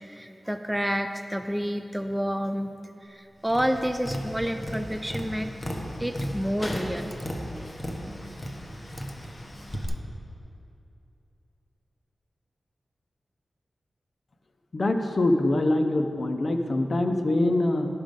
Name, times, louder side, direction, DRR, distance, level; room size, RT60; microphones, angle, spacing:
voice 1, 0.0-2.7 3.0-5.5 6.0-7.2, equal, 5° right, 7 dB, 0.4 m, -29 dB
Tap, 3.5-9.9, equal, 30° left, 1.1 m, -35 dB
voice 2, 14.7-17.9, left 2 dB, 50° left, 6 dB, 0.7 m, -24 dB
11.0 x 6.2 x 5.2 m, 2.8 s
wide cardioid pair, 110°, 0 cm